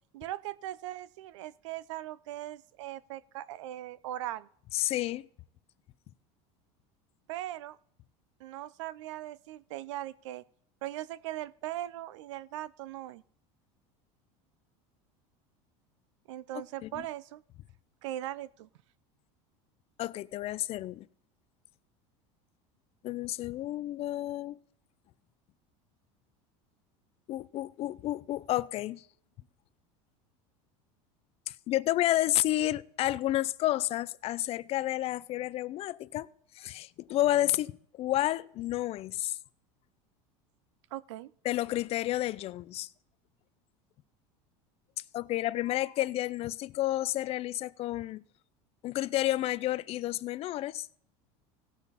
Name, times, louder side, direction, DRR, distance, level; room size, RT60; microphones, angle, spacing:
voice 1, 0.1-4.5 7.3-7.8 8.4-10.4 10.8-13.2 16.3-17.4 18.0-18.7 40.9-41.3, right 14 dB, 90° right, 0.6 m, -39 dB
voice 2, 4.7-5.3 16.8-17.0 20.0-21.1 23.0-24.6 27.3-29.0 31.7-36.3 36.6-39.4 41.4-42.9 45.1-48.2 48.8-50.9, left 15 dB, 40° left, 0.5 m, -30 dB
17.0 x 7.2 x 4.1 m
supercardioid pair, 125°, 15 cm